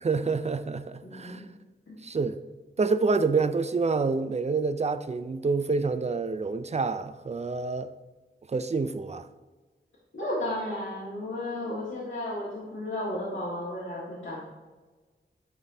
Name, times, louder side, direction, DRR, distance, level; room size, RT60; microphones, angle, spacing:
voice 1, 0.0-1.4 2.0-2.4 2.8-7.9 8.5-9.3, right 4 dB, 35° right, 11 dB, 0.4 m, -27 dB
voice 2, 1.0-1.4 1.9-2.0 10.1-14.4, left 1 dB, 90° left, -8 dB, 1.7 m, -33 dB
10.5 x 4.1 x 2.7 m, 1.3 s
wide cardioid pair, 70°, 20 cm